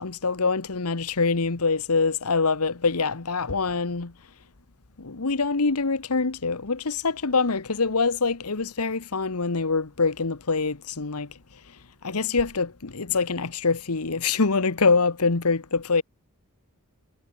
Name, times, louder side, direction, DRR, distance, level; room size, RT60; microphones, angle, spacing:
voice 1, 0.0-4.1 5.0-11.3 12.0-16.0, left 4 dB, 85° left, 1.3 m, -24 dB
head